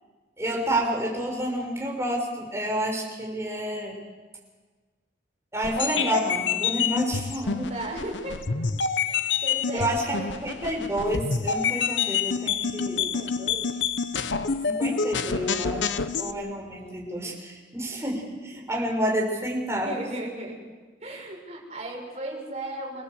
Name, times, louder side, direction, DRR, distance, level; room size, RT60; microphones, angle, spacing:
voice 1, 0.4-4.0 5.5-7.7 9.7-10.2 10.4-13.1 14.6-15.9 16.2-19.9, right 1 dB, 15° right, -1 dB, 5.8 m, -29 dB
sound 1, 5.6-16.3, left 6 dB, 85° left, 1.0 m, -27 dB
voice 2, 7.7-8.4 9.0-10.5 12.9-13.9 16.0-16.4 19.8-20.6 21.0-23.0, right 1 dB, 35° right, -1 dB, 6.5 m, -36 dB
27.0 x 18.0 x 8.1 m, 1.4 s
head